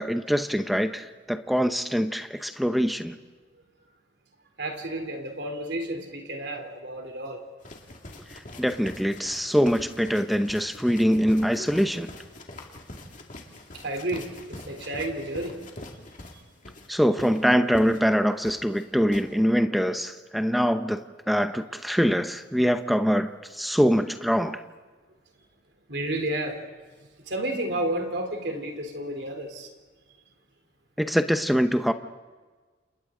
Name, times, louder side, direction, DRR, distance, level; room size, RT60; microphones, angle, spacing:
voice 1, 0.0-3.2 8.6-12.1 16.9-21.0 21.3-23.3 23.6-24.6 31.0-31.9, equal, ahead, 8 dB, 0.7 m, -23 dB
voice 2, 4.6-7.4 11.6-11.7 13.8-15.6 25.9-26.6 27.3-29.7, right 1 dB, 70° right, 3 dB, 3.5 m, -31 dB
sound 1, 7.6-19.3, left 1 dB, 45° left, 2.3 m, -44 dB
30.0 x 28.0 x 3.8 m, 1.4 s
head